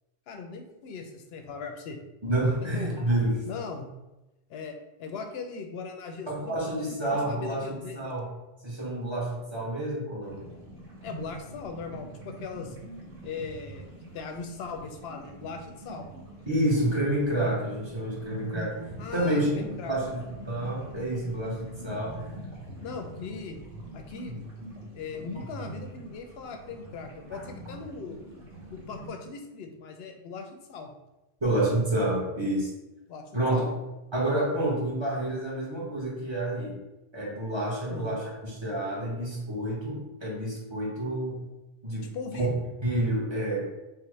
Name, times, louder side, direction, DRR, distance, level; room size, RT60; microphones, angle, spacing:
voice 1, 0.3-2.0 2.7-3.0 3.5-3.9 4.5-4.7 5.0-6.5 6.9-8.0 11.0-12.8 13.2-16.1 19.0-20.2 22.8-23.6 23.9-24.4 24.9-28.2 28.7-30.9 33.1-33.2 33.5-33.7 37.9-38.2 42.1-42.6, left 4 dB, 70° left, 4 dB, 0.8 m, -39 dB
voice 2, 2.2-3.4 6.3-8.3 8.6-10.4 16.5-18.7 19.1-22.2 27.3-27.4 31.4-32.7 33.3-33.6 34.1-36.8 37.1-41.4 41.8-42.1 42.4-42.5 42.8-43.7, right 1 dB, 25° right, -5 dB, 1.0 m, -29 dB
sound 1, 10.2-29.1, right 1 dB, 55° right, 1.2 m, -43 dB
5.5 x 2.1 x 3.1 m, 1.0 s
omnidirectional pair, 1.2 m